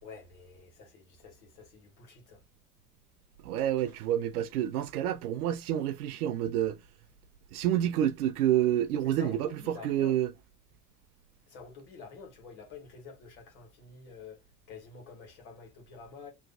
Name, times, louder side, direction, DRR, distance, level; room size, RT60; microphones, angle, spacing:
voice 1, 0.0-2.4 9.0-10.2 11.5-14.4 14.7-16.3, left 5 dB, 65° left, 1.7 m, -48 dB
voice 2, 3.4-6.8 7.5-10.3, right 11 dB, 70° right, 0.6 m, -28 dB
3.1 x 2.4 x 3.7 m
figure-of-eight pair, 60°, 46 cm